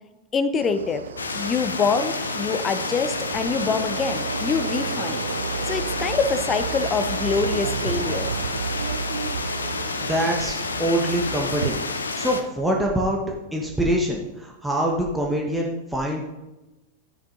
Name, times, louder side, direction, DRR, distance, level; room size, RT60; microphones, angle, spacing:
voice 1, 0.3-1.0 1.3-5.2 5.7-8.3, left 5 dB, 25° left, 12 dB, 0.7 m, -25 dB
sound 1, 0.6-12.0, right 7 dB, 65° right, 0.4 m, -32 dB
sound 2, 1.2-12.4, left 4 dB, 75° left, 0.7 m, -30 dB
voice 2, 10.0-11.8 12.2-13.2 13.5-16.2, right 1 dB, 5° right, -1 dB, 1.2 m, -24 dB
14.0 x 10.0 x 2.6 m, 1.0 s
figure-of-eight pair, 90°, 0 cm